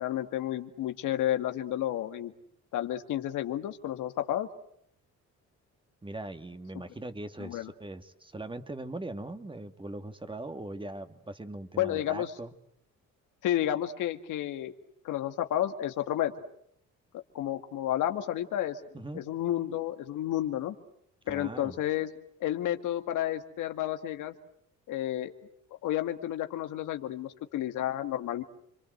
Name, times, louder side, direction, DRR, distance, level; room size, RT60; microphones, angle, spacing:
voice 1, 0.0-2.3 2.7-4.5 7.4-7.7 11.8-12.3 13.4-14.7 15.0-16.3 17.1-18.8 19.1-20.8 21.3-22.1 22.4-24.3 24.9-25.3 25.8-28.4, left 12 dB, 85° left, 7 dB, 2.1 m, -31 dB
voice 2, 6.0-12.5 18.9-19.2 21.3-21.8, right 2 dB, 15° right, 8 dB, 2.2 m, -40 dB
29.5 x 23.5 x 8.0 m, 0.69 s
cardioid pair, 90°, 30 cm